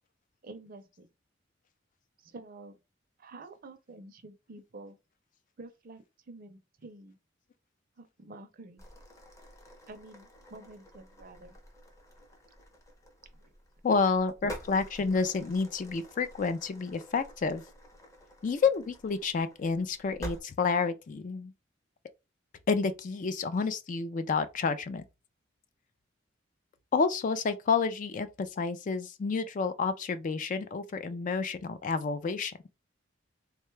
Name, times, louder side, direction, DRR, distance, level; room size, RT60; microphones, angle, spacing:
voice 1, 0.4-1.1 2.2-2.8 3.2-5.0 5.6-7.2 8.0-8.8 9.9-11.6 13.2-13.5, right 2 dB, 45° right, 0.5 m, -49 dB
sound 1, 8.8-20.4, equal, 15° left, 0.7 m, -48 dB
voice 2, 13.8-17.6 18.4-21.5 22.7-25.0 26.9-32.5, left 4 dB, 40° left, 0.3 m, -29 dB
3.6 x 2.2 x 3.1 m
head